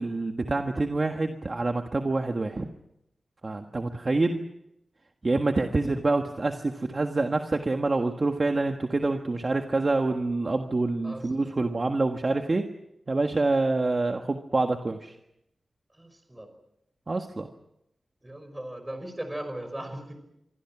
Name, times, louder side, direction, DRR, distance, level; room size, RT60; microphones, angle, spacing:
voice 1, 0.0-2.7 3.4-4.4 5.2-12.6 13.1-15.1 17.1-17.5, right 2 dB, 35° right, 4 dB, 1.5 m, -26 dB
voice 2, 11.0-11.5 16.0-16.5 18.2-20.1, right 1 dB, 15° right, 7 dB, 5.5 m, -38 dB
26.5 x 24.5 x 6.1 m, 0.81 s
wide cardioid pair, 130°, 0 cm